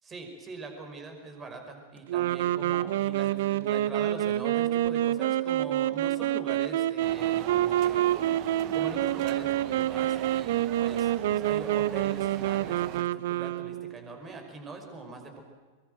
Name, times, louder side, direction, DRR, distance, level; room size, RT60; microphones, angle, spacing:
voice 1, 0.0-8.1 8.7-15.4, right 3 dB, 20° right, 4 dB, 5.5 m, -42 dB
sound 1, 2.1-13.9, right 13 dB, 55° right, 0.7 m, -27 dB
sound 2, 7.0-13.0, right 13 dB, 40° right, 1.1 m, -41 dB
24.5 x 22.5 x 7.9 m, 1.4 s
figure-of-eight pair, 90°, 0 cm